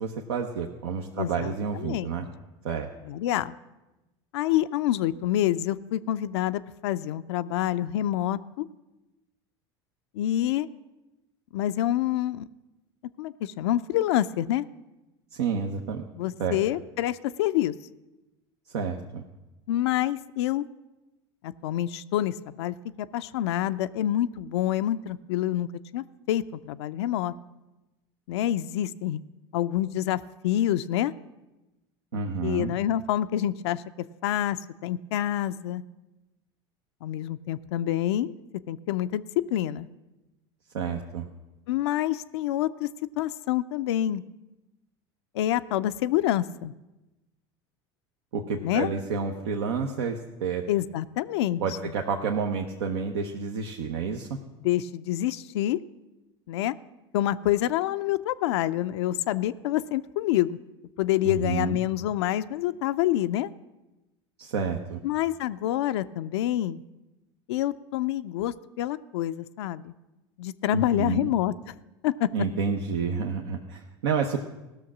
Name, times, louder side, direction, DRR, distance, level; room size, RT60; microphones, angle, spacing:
voice 1, 0.0-2.3 2.6-2.9 15.3-16.0 16.4-16.6 18.7-19.2 32.1-32.7 40.7-41.3 48.3-50.6 51.6-54.3 61.2-61.8 64.4-65.0 70.7-71.3 72.3-74.4, right 5 dB, 80° right, 2 dB, 0.8 m, -29 dB
voice 2, 1.2-2.1 3.1-3.5 4.3-8.7 10.1-10.7 11.5-12.5 13.2-14.6 16.1-17.7 19.7-20.6 21.4-25.7 25.9-27.3 28.3-29.2 29.5-31.1 32.4-33.8 34.2-35.8 37.0-38.3 38.7-39.9 41.7-42.9 43.2-44.2 45.3-46.7 48.6-48.9 50.7-51.6 54.6-55.8 56.5-56.7 57.1-60.6 61.0-63.5 65.0-66.8 67.5-69.9 70.4-71.5 72.0-72.3, left 13 dB, 80° left, 10 dB, 0.4 m, -27 dB
16.0 x 6.4 x 6.0 m, 1.0 s
hypercardioid pair, 90°, 14 cm